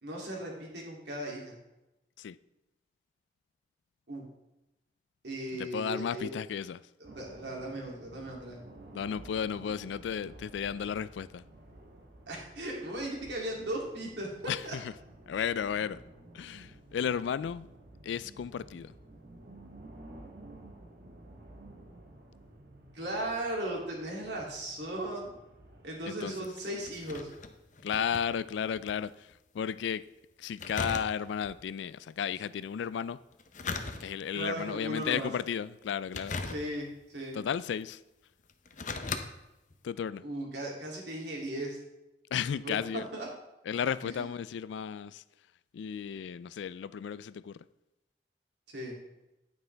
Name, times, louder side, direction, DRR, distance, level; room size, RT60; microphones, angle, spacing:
voice 1, 0.0-1.6 4.1-4.2 5.2-6.3 7.1-8.6 12.3-14.8 22.9-25.3 25.8-27.3 34.3-35.3 36.5-37.4 40.2-41.8 42.5-43.3 44.0-44.2 48.7-48.9, right 1 dB, 75° right, 2.7 m, -37 dB
voice 2, 5.5-6.8 8.9-11.4 14.5-14.9 15.3-16.0 16.3-17.7 18.0-18.9 26.1-26.5 27.8-30.1 30.4-33.2 34.0-36.5 37.3-38.0 39.8-40.2 42.3-43.1 43.7-45.2 45.7-47.6, left 7 dB, 85° left, 0.3 m, -34 dB
sound 1, 7.0-26.0, right 1 dB, 55° right, 1.4 m, -53 dB
sound 2, 26.2-29.0 29.3-29.4 30.6-31.5 33.3-34.4 35.0-35.3 36.1-37.0 37.8-37.9 38.5-39.2 39.7-39.8, left 4 dB, 45° left, 0.7 m, -38 dB
9.5 x 9.1 x 3.4 m
head